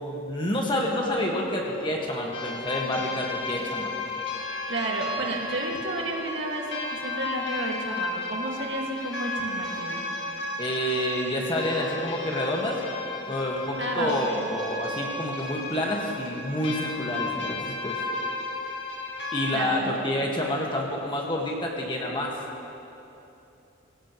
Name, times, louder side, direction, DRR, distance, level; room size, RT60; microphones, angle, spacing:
voice 1, 0.0-3.9 10.6-12.8 13.3-18.0 19.3-22.4, left 1 dB, 25° left, -1 dB, 1.7 m, -28 dB
sound 1, 2.3-19.7, left 2 dB, 70° left, 1.8 m, -34 dB
voice 2, 4.7-10.0 13.8-14.5 19.5-20.0, right 1 dB, 65° right, -1 dB, 2.1 m, -32 dB
22.5 x 16.5 x 3.1 m, 2.9 s
head